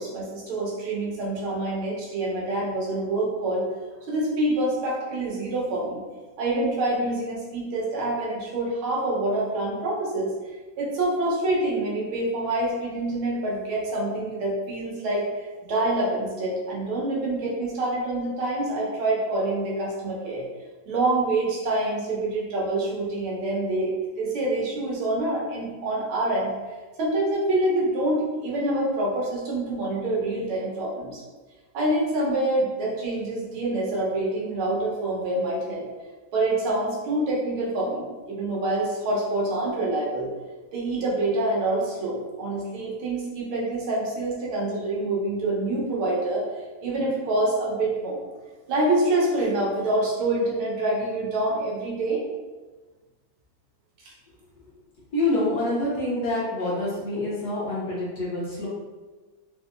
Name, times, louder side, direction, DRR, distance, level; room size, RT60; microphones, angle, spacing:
voice 1, 0.0-3.7 4.1-6.0 6.4-10.3 10.8-20.4 20.9-23.9 24.2-26.5 27.0-31.2 31.7-35.8 36.3-40.3 40.7-46.4 46.8-48.2 48.7-52.2, right 2 dB, 90° right, -4 dB, 1.8 m, -26 dB
voice 2, 55.1-58.7, left 2 dB, 65° left, -5 dB, 1.1 m, -26 dB
3.8 x 2.7 x 2.5 m, 1.3 s
omnidirectional pair, 2.2 m